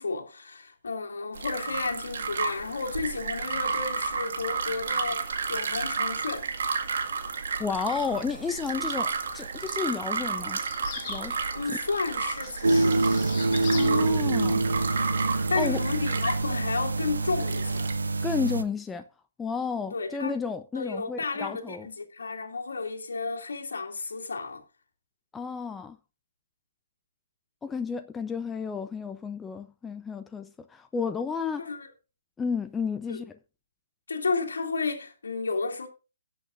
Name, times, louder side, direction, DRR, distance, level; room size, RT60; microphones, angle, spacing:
voice 1, 0.0-6.5 11.5-13.0 15.5-17.9 19.9-20.3 20.7-24.6 31.6-31.9 33.1-33.2 34.1-35.9, left 4 dB, 70° left, 2.6 m, -32 dB
sound 1, 1.3-17.9, right 5 dB, 60° right, 1.9 m, -32 dB
voice 2, 7.6-10.6 10.9-11.4 13.7-14.7 15.6-15.8 18.2-19.0 19.4-21.9 25.3-26.0 27.6-31.7 32.4-33.4, left 5 dB, 10° left, 0.5 m, -32 dB
sound 2, 10.6-11.3 12.3-13.9, left 7 dB, 30° left, 2.8 m, -40 dB
sound 3, 12.6-18.6, right 2 dB, 75° right, 1.1 m, -26 dB
17.5 x 8.3 x 2.6 m
figure-of-eight pair, 130°, 0 cm